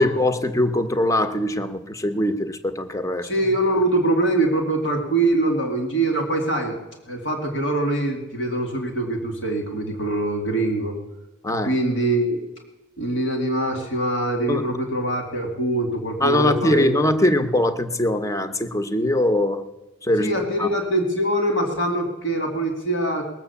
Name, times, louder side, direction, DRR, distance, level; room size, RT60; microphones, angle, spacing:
voice 1, 0.0-3.3 11.4-11.7 14.5-14.7 16.2-19.6 20.0-20.3 20.6-20.7, left 1 dB, 15° left, 10 dB, 0.7 m, -21 dB
voice 2, 3.2-6.8 7.1-11.0 11.6-12.4 13.0-17.0 20.2-23.2, right 1 dB, 70° left, 3 dB, 2.4 m, -23 dB
20.0 x 7.5 x 7.0 m, 1.1 s
head